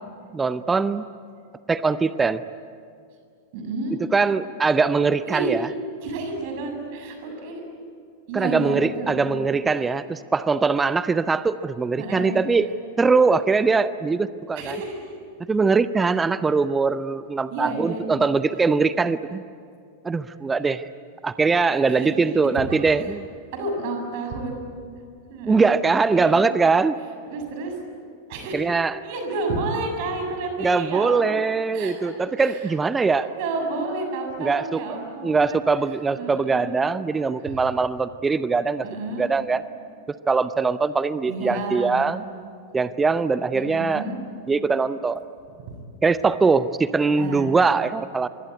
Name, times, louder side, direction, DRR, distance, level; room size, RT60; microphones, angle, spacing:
voice 1, 0.3-1.0 1.7-2.4 4.1-5.7 8.3-12.7 13.0-14.8 15.5-19.4 20.0-20.9 21.2-23.2 25.5-27.0 28.5-29.0 30.6-33.3 34.4-34.8 35.2-38.8 39.1-39.6 40.3-42.2 42.7-44.0 44.5-45.2 46.0-48.3, right 4 dB, 15° right, 15 dB, 0.7 m, -22 dB
voice 2, 3.5-4.0 5.2-5.5 6.0-7.6 8.3-9.4 9.8-9.9 12.0-12.4 14.6-15.1 17.5-18.0 21.9-22.1 22.7-22.8 23.5-24.6 25.3-25.8 26.1-26.5 27.3-27.7 28.3-28.7 29.0-31.4 31.7-35.6 36.2-36.8 37.5-37.6 38.8-39.3 41.3-42.0 43.5-44.2 45.7-45.8 47.2-47.5, right 2 dB, 50° right, 4 dB, 7.0 m, -31 dB
26.0 x 23.5 x 9.7 m, 2.3 s
figure-of-eight pair, 90°, 0 cm